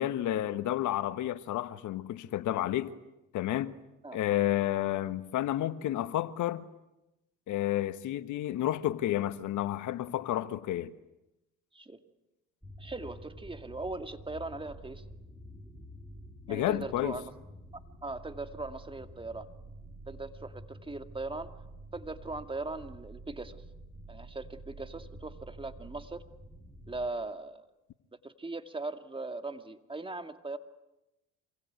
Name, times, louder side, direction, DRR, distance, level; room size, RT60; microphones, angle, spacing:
voice 1, 0.0-2.9 3.3-3.7 4.1-6.6 7.5-10.9 16.5-17.2, left 13 dB, 60° left, 1.3 m, -31 dB
sound 1, 12.6-27.1, right 1 dB, 5° left, 6.3 m, -49 dB
voice 2, 12.8-15.0 16.5-17.3 17.7-19.5 20.1-21.5 21.9-23.6 24.1-26.3 26.9-27.7 28.2-30.6, right 2 dB, 15° right, 2.3 m, -39 dB
27.0 x 23.5 x 9.4 m
supercardioid pair, 75°, 33 cm